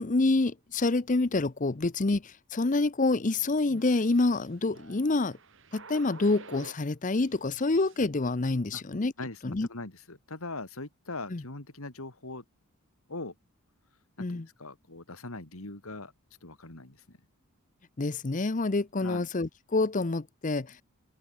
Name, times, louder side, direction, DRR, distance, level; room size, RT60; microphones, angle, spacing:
voice 1, 0.0-5.4 5.7-9.1 9.4-9.7 11.3-11.4 14.2-14.5 18.0-20.8, left 3 dB, 35° left, 0.7 m, -27 dB
sound 1, 2.7-6.9 7.2-8.1, right 3 dB, 55° right, 4.0 m, -50 dB
voice 2, 9.2-12.4 13.1-13.3 14.2-16.1 16.4-17.2 19.0-19.3, left 2 dB, 70° left, 2.7 m, -41 dB
head